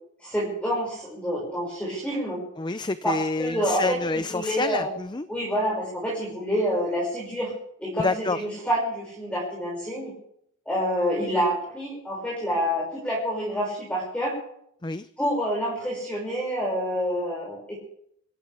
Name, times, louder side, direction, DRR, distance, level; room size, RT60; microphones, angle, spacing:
voice 1, 0.2-2.4 3.0-4.0 4.3-4.9 5.3-7.5 7.8-10.1 10.7-14.3 15.2-17.7, equal, 5° left, -5 dB, 6.1 m, -27 dB
voice 2, 2.6-5.3 8.0-8.4 14.8-15.1, left 3 dB, 20° left, 12 dB, 0.5 m, -28 dB
26.5 x 15.0 x 3.5 m, 0.70 s
head